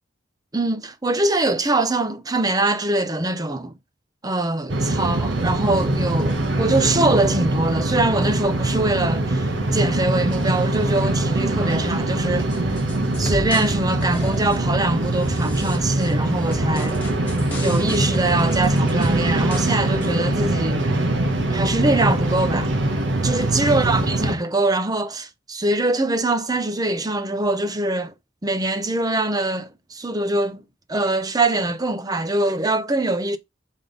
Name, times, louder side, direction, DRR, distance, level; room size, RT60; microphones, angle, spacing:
voice 1, 0.5-3.7 4.2-12.5 13.2-17.0 17.6-20.9 21.5-22.7 23.2-28.1 28.4-30.6 30.9-33.4, right 2 dB, 20° right, 0.7 m, -23 dB
sound 1, 4.7-24.3, right 2 dB, 65° right, 1.0 m, -22 dB
sound 2, 12.5-13.8 14.0-14.7 15.3-16.1 16.5-19.8 20.0-20.1, equal, 10° left, 1.5 m, -34 dB
6.7 x 3.7 x 3.8 m
head